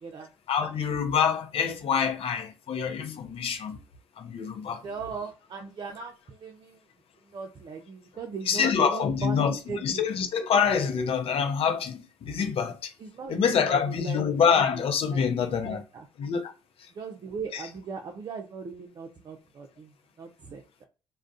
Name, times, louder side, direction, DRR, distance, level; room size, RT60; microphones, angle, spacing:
voice 1, 0.5-3.8 4.2-4.8 8.5-12.9 13.3-15.8 16.2-16.5 17.5-17.6, left 6 dB, 55° left, 0.6 m, -26 dB
voice 2, 4.8-6.8 7.3-10.0 13.0-14.2 14.6-14.8 15.1-16.1 16.9-19.9 20.2-20.9, right 5 dB, 40° right, 0.5 m, -39 dB
2.3 x 2.1 x 2.5 m
supercardioid pair, 65°, 12 cm